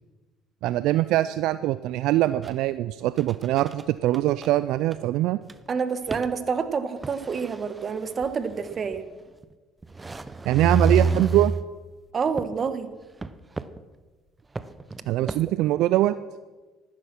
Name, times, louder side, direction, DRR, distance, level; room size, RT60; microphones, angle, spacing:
voice 1, 0.6-5.4 10.5-11.5 15.1-16.1, right 15 dB, 70° right, 14 dB, 0.4 m, -23 dB
sound 1, 2.4-2.7 3.2-3.8 4.1-4.2 4.4-4.5 4.9-5.0 5.5-5.6 6.1-6.4 7.0-9.0 9.4-9.5 9.8-11.7 12.4-12.7 13.2-13.8 14.6-15.4, right 4 dB, 20° right, 0.8 m, -28 dB
voice 2, 5.7-9.0 12.1-12.9, right 5 dB, 40° right, 11 dB, 1.4 m, -28 dB
14.0 x 12.5 x 6.1 m, 1.3 s
hypercardioid pair, 70°, 0 cm